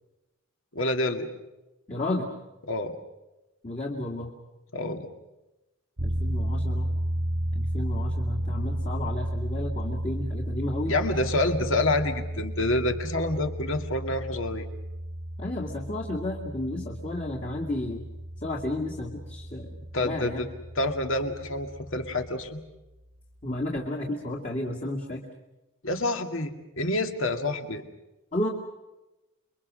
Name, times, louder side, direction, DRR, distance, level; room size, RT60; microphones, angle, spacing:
voice 1, 0.7-1.3 2.7-2.9 4.7-5.1 10.9-14.7 19.9-20.5 20.8-22.6 25.8-27.8, left 2 dB, 65° left, 5 dB, 2.1 m, -27 dB
voice 2, 1.9-2.3 3.6-4.3 6.0-6.9 7.5-10.9 15.4-18.0 18.4-20.4 23.4-25.2 28.3-28.5, left 1 dB, 30° left, -2 dB, 2.3 m, -32 dB
sound 1, 6.0-22.3, right 1 dB, 80° right, 2.0 m, -33 dB
28.5 x 23.0 x 6.4 m, 1.0 s
head